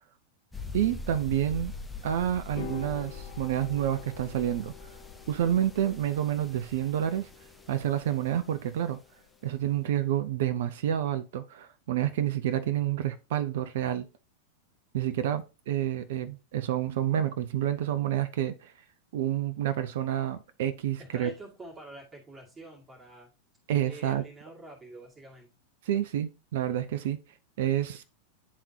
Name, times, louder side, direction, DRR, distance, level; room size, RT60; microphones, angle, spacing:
sound 1, 0.5-8.9, left 4 dB, 5° left, 0.7 m, -43 dB
voice 1, 0.7-1.7 2.0-4.7 5.3-7.3 7.7-9.0 9.4-14.1 14.9-18.7 19.1-21.3 23.7-24.2 25.9-27.2 27.6-28.0, right 11 dB, 55° right, 0.4 m, -29 dB
sound 2, 2.6-11.0, left 10 dB, 50° left, 0.9 m, -48 dB
voice 2, 21.0-23.3 23.8-25.5, right 2 dB, 15° right, 2.1 m, -47 dB
9.7 x 3.6 x 2.8 m
figure-of-eight pair, 90°, 0 cm